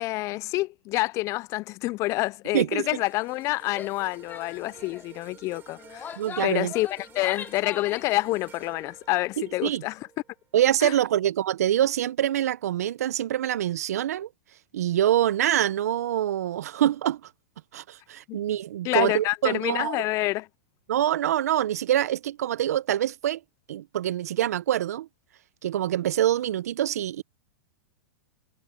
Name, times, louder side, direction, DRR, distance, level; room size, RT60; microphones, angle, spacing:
voice 1, 0.0-6.1 6.4-10.0 10.8-10.9 18.3-18.4 18.8-20.5, left 19 dB, 35° left, 0.4 m, -28 dB
voice 2, 2.5-2.9 6.2-6.7 9.4-9.8 10.5-14.3 14.7-17.3 17.7-20.0 20.9-23.4 23.7-25.1 25.6-27.2, right 11 dB, 75° right, 0.9 m, -25 dB
sound 1, 2.7-11.1 11.5-11.7, right 9 dB, 25° right, 4.1 m, -52 dB
Female speech woman speaking / Yell, 3.7-4.0 4.3-4.5 4.7-5.1 5.8-8.2, left 8 dB, 20° left, 1.2 m, -39 dB
sound 2, 4.0-9.7, left 21 dB, 55° left, 8.0 m, -61 dB
hypercardioid pair, 115°, 9 cm